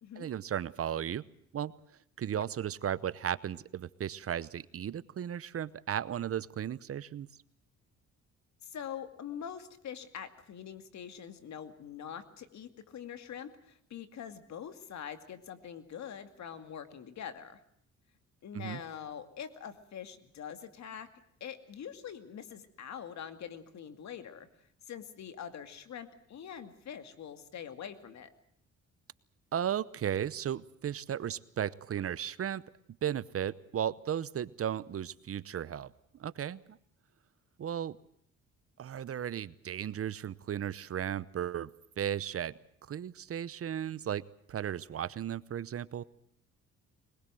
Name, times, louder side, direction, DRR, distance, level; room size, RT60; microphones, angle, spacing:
voice 1, 0.2-1.2 1.5-1.7 2.2-7.3 18.5-18.8 29.5-32.6 33.0-35.9 36.2-36.8 37.6-38.0 38.8-41.7 42.0-42.6 42.9-44.2 44.5-46.0, right 9 dB, 50° right, 18 dB, 0.8 m, -35 dB
voice 2, 8.6-17.6 18.4-21.1 21.4-28.3, left 8 dB, 65° left, 9 dB, 2.4 m, -44 dB
22.5 x 21.0 x 7.7 m, 0.69 s
cardioid pair, 90°, 30 cm